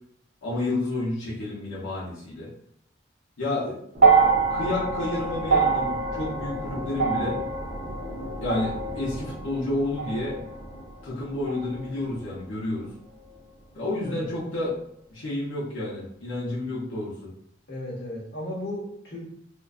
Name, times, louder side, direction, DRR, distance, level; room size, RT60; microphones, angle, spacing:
voice 1, 0.4-2.5 3.4-3.8 4.5-7.4 8.4-10.4 11.0-12.9 13.7-14.8 15.1-17.1, left 2 dB, 85° left, -7 dB, 0.7 m, -30 dB
sound 1, 3.9-12.3 13.4-13.5, right 4 dB, 45° right, 0.5 m, -26 dB
voice 2, 17.7-19.3, left 1 dB, 60° left, -5 dB, 0.9 m, -35 dB
2.5 x 2.2 x 2.3 m, 0.70 s
head